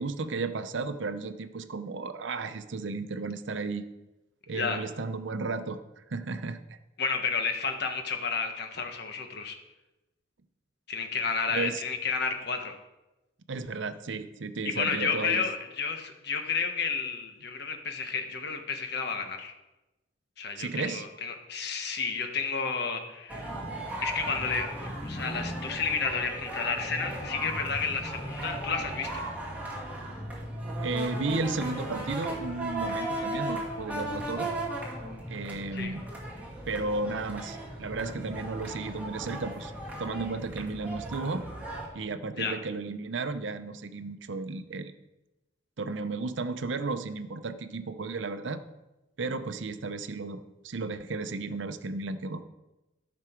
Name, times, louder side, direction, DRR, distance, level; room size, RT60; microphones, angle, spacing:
voice 1, 0.0-3.9 4.5-5.8 6.1-6.6 11.5-11.8 13.5-15.4 20.6-21.0 30.8-34.5 35.3-36.0 36.7-39.7 40.0-41.4 41.9-44.9 45.8-48.6 49.2-52.4, right 3 dB, 70° right, 10 dB, 0.6 m, -34 dB
voice 2, 7.0-9.6 10.9-12.7 14.6-19.5 20.4-23.5 24.0-29.2 35.7-35.9 42.4-42.6, left 5 dB, 55° left, 5 dB, 1.2 m, -31 dB
sound 1, 23.3-41.9, right 1 dB, 10° right, 2.1 m, -36 dB
13.5 x 6.1 x 4.5 m, 1.0 s
head